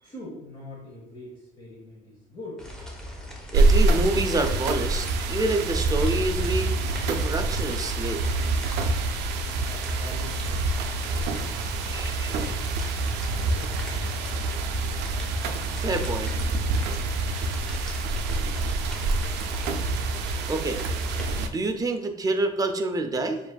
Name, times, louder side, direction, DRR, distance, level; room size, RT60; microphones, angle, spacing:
voice 1, 0.0-2.6 9.3-12.5 12.9-13.9, left 1 dB, 30° left, -4 dB, 1.0 m, -44 dB
sound 1, 2.6-21.4, left 1 dB, 5° left, 1.0 m, -39 dB
voice 2, 3.5-6.7 7.1-8.2 11.9-12.6 15.8-16.3 20.5-20.8 21.3-23.4, right 2 dB, 20° right, 6 dB, 0.5 m, -27 dB
sound 2, 3.5-21.5, right 3 dB, 85° right, 0.4 m, -26 dB
Bowed string instrument, 12.9-16.8, left 10 dB, 80° left, 0.7 m, -44 dB
6.9 x 2.6 x 2.3 m, 0.92 s
cardioid pair, 110°, 17 cm